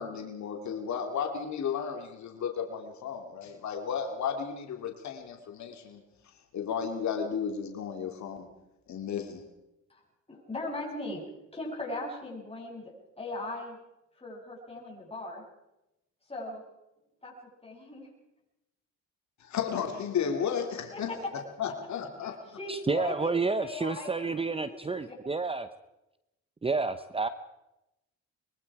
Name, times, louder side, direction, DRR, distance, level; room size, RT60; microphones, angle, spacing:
voice 1, 0.0-6.0 6.5-8.5 8.9-9.4 19.4-21.1 21.6-22.4, left 7 dB, 65° left, 4 dB, 2.8 m, -33 dB
voice 2, 10.3-11.3 11.5-13.8 14.1-15.4 16.2-16.6 17.2-17.3 17.6-18.1 20.9-21.3 22.5-24.3 24.7-25.2, left 2 dB, 20° left, -2 dB, 7.8 m, -38 dB
voice 3, 22.7-25.7 26.6-27.3, right 4 dB, 20° right, 12 dB, 0.9 m, -30 dB
24.0 x 22.5 x 4.9 m, 0.92 s
cardioid pair, 90°, 30 cm